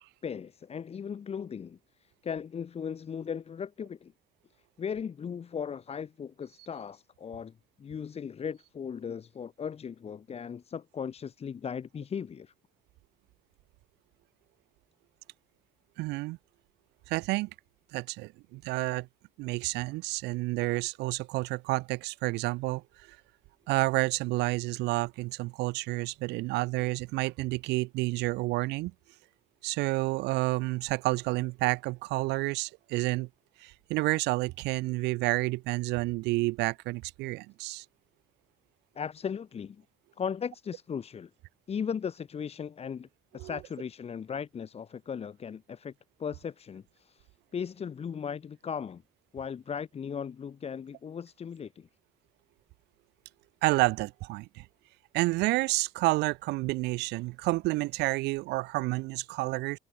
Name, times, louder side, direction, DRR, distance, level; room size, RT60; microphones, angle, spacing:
voice 1, 0.2-4.1 4.8-12.5 38.9-39.8 40.2-41.3 41.7-43.1 43.3-45.9 46.2-47.3 47.5-49.0 49.3-51.9, left 7 dB, 35° left, 1.6 m, -37 dB
voice 2, 16.0-16.4 17.1-17.5 17.9-19.1 19.4-22.8 23.1-23.2 23.7-28.9 29.6-33.3 33.6-37.8 43.4-43.5 53.6-54.6 55.1-59.8, right 22 dB, 85° right, 0.6 m, -29 dB
cardioid pair, 110°, 17 cm